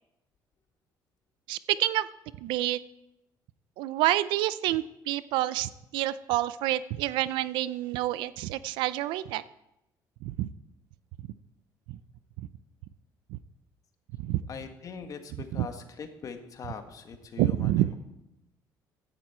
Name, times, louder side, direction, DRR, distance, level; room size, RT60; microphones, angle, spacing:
voice 1, 1.5-2.1 2.4-2.8 3.8-9.4 10.2-10.5 11.9-12.0 12.4-12.5 13.3-13.4 14.2-14.4 15.6-15.7 17.4-17.9, right 15 dB, 90° right, 16 dB, 0.5 m, -28 dB
voice 2, 14.5-17.9, left 6 dB, 45° left, 6 dB, 1.7 m, -42 dB
15.5 x 11.0 x 4.4 m, 0.88 s
cardioid pair, 100°, 8 cm